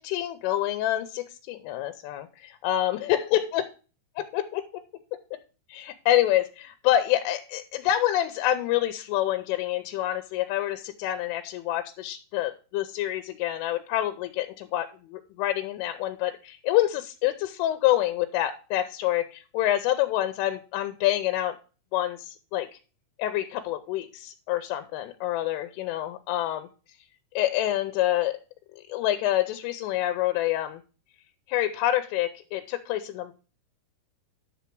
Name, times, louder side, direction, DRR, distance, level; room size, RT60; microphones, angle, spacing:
voice 1, 0.0-3.6 4.2-4.8 5.7-21.6 21.9-22.7 23.2-26.7 27.4-28.4 28.9-30.8 31.5-33.3, left 13 dB, 85° left, 8 dB, 3.2 m, -27 dB
10.5 x 7.0 x 4.6 m, 0.35 s
omnidirectional pair, 5.7 m